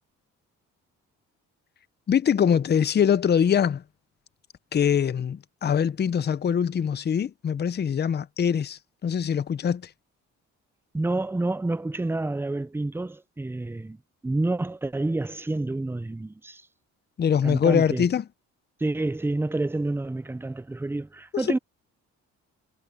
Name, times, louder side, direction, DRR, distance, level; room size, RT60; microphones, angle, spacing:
voice 1, 2.1-3.8 4.7-9.9 17.2-18.2, left 8 dB, 35° left, 0.6 m, -23 dB
voice 2, 10.9-14.0 14.2-16.6 17.4-18.1 18.8-21.6, right 2 dB, 10° right, 0.5 m, -28 dB
cardioid pair, 90°, 30 cm